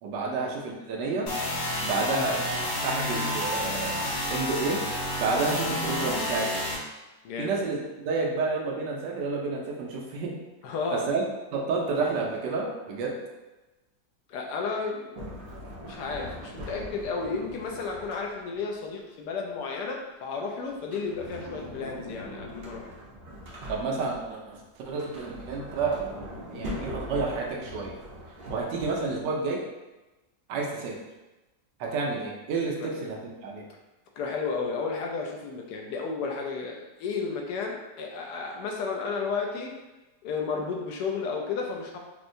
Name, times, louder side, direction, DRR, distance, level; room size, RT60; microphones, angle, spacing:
voice 1, 0.0-1.3 1.8-4.0 4.3-4.8 5.2-6.6 7.4-7.8 8.0-10.3 10.9-11.2 11.5-13.1 23.7-26.0 26.5-28.0 28.5-29.6 30.5-31.0 31.8-33.6, right 4 dB, 85° right, -1 dB, 1.3 m, -30 dB
sound 1, 1.3-6.7, left 1 dB, 60° left, 1.1 m, -30 dB
voice 2, 7.2-7.6 10.6-11.1 14.3-15.4 15.8-22.9 32.8-32.9 34.2-39.7 40.2-42.0, left 4 dB, 80° left, 0 dB, 1.1 m, -33 dB
Sliding door, 15.1-18.7 20.7-24.3 24.9-29.2, equal, 55° right, 0.5 m, -41 dB
4.4 x 2.1 x 2.6 m, 1.1 s
omnidirectional pair, 1.8 m